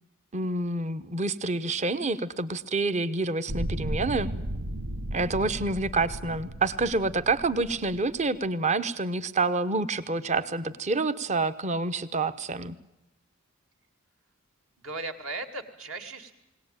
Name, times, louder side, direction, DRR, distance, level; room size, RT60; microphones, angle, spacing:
voice 1, 0.3-4.3 5.1-12.8, right 3 dB, 30° right, 12 dB, 0.9 m, -28 dB
sound 1, 3.5-8.4, right 1 dB, 90° right, 1.4 m, -35 dB
voice 2, 14.8-16.3, right 3 dB, 65° right, 6 dB, 2.5 m, -37 dB
21.0 x 18.0 x 9.0 m, 0.93 s
head